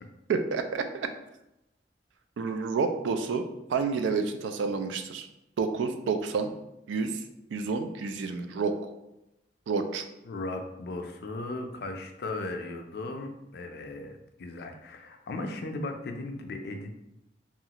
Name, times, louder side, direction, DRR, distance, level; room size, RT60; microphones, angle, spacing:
voice 1, 0.3-1.1 2.4-3.4 3.7-5.3 5.6-6.5 6.9-7.2 7.5-8.8 9.7-10.0, right 5 dB, 85° right, 7 dB, 0.3 m, -29 dB
voice 2, 10.2-16.9, left 2 dB, 60° left, 5 dB, 0.4 m, -37 dB
3.0 x 2.4 x 2.8 m, 0.91 s
head